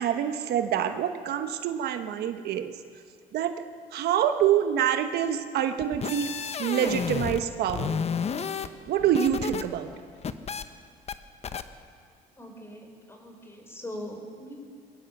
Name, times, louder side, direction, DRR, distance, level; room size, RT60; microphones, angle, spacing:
voice 1, 0.0-2.7 3.3-3.6 3.9-6.3 6.6-8.0 8.9-9.9, right 10 dB, 70° right, 8 dB, 1.1 m, -26 dB
sound 1, 5.8-7.4 7.7-9.6 9.9-10.6 11.1-11.2 11.4-11.6, left 6 dB, 40° left, 1.0 m, -31 dB
voice 2, 12.4-14.6, left 1 dB, 15° left, 3 dB, 4.5 m, -41 dB
22.0 x 17.5 x 7.2 m, 2.1 s
cardioid pair, 110°, 17 cm